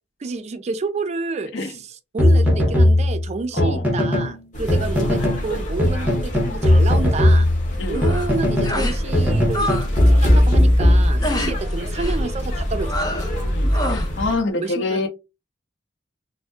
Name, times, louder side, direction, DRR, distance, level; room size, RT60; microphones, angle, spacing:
voice 1, 0.2-7.5 7.9-13.0 14.5-15.1, right 3 dB, 35° right, 0.4 m, -29 dB
sound 1, 2.2-4.3 4.7-5.4 5.8-8.8 9.1-11.5, left 1 dB, 10° right, 0.9 m, -17 dB
voice 2, 3.5-3.8 7.8-8.1 11.2-11.5 13.5-15.1, left 3 dB, 80° left, 0.7 m, -26 dB
sound 2, 4.5-14.4, equal, 45° left, 1.1 m, -27 dB
sound 3, 7.9-8.3 8.6-9.0 9.3-9.9 10.1-10.5 11.2-11.6 12.0-12.3 12.8-13.4 13.7-14.1, left 1 dB, 20° left, 0.7 m, -26 dB
2.6 x 2.1 x 3.4 m
head